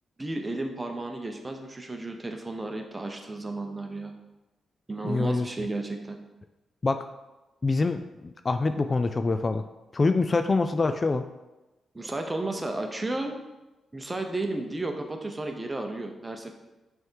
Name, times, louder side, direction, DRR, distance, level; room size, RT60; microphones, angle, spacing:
voice 1, 0.2-4.1 4.9-6.2 11.9-13.4 13.9-16.5, right 2 dB, 20° right, 4 dB, 0.9 m, -33 dB
voice 2, 5.0-5.5 6.8-7.0 7.6-9.6 9.9-11.2, left 3 dB, 35° left, 8 dB, 0.3 m, -25 dB
6.2 x 3.6 x 4.6 m, 1.0 s
cardioid pair, 85°, 0 cm